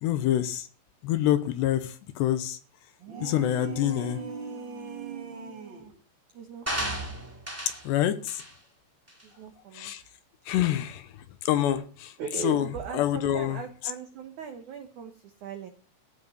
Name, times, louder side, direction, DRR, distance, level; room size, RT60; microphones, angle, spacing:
voice 1, 0.0-0.7 1.0-2.6 3.2-4.2 7.8-8.4 9.7-10.0 10.5-12.1 12.4-12.7 12.9-13.6, left 12 dB, 75° left, 2.9 m, -26 dB
sound 1, 3.0-6.0, right 5 dB, 55° right, 1.3 m, -38 dB
voice 2, 6.3-7.0 9.2-9.9 11.7-11.8 12.2-15.7, right 7 dB, 75° right, 1.8 m, -39 dB
sound 2, 6.7-7.9 8.3-8.5 9.1-9.2, equal, 5° right, 1.1 m, -33 dB
15.5 x 6.1 x 9.1 m
omnidirectional pair, 5.4 m